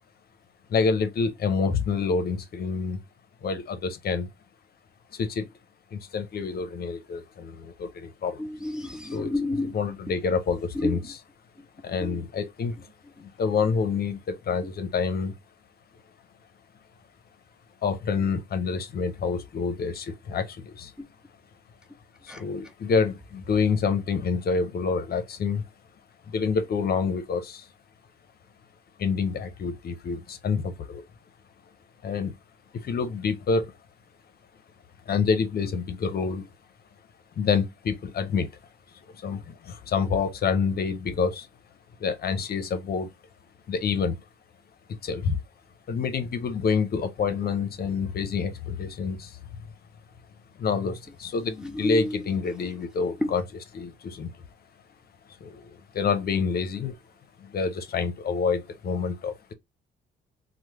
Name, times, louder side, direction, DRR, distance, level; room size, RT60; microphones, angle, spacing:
voice 1, 0.7-3.0 3.4-4.3 5.1-5.5 5.9-8.4 9.1-9.3 9.7-11.2 11.8-12.9 13.2-15.3 17.8-20.9 22.2-25.6 26.3-27.7 29.0-31.0 32.0-32.3 32.7-33.7 35.1-36.5 37.4-38.5 39.1-41.5 42.0-43.1 43.7-44.2 45.0-45.4 45.9-49.4 50.6-53.4 53.7-54.3 55.4-57.0 57.4-59.5, left 5 dB, 50° left, 0.5 m, -27 dB
voice 2, 8.4-9.7 10.8-11.0 12.0-12.2 22.3-22.4 51.8-52.2 53.2-53.3, left 1 dB, 5° right, 0.6 m, -29 dB
3.1 x 2.0 x 2.9 m
cardioid pair, 90°, 20 cm